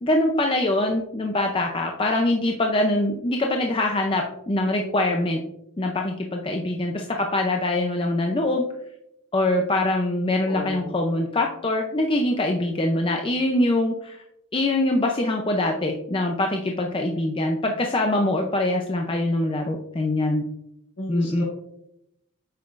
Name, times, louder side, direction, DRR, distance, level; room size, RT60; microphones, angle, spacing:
voice 1, 0.0-5.4 5.8-8.6 9.3-14.2 14.5-20.4 21.1-21.4, left 1 dB, 25° left, 2 dB, 0.5 m, -23 dB
voice 2, 10.4-10.9 21.0-21.4, left 2 dB, 55° left, -4 dB, 1.5 m, -32 dB
8.5 x 5.8 x 2.5 m, 0.81 s
head